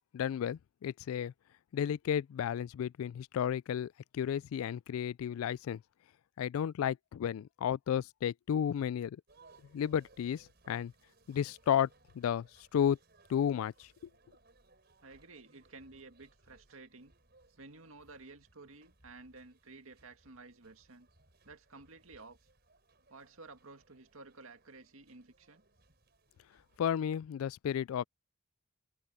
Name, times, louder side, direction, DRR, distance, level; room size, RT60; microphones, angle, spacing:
voice 1, 0.1-1.3 1.7-5.8 6.4-9.2 9.7-10.9 11.3-11.9 12.1-12.5 12.7-13.0 13.3-13.9 26.8-28.0, left 9 dB, 85° left, 0.3 m, -33 dB
sound 1, 9.3-26.8, right 2 dB, 50° right, 5.2 m, -66 dB
voice 2, 15.0-17.1 17.6-21.1 21.4-22.4 23.1-25.6, right 3 dB, 85° right, 2.0 m, -53 dB
head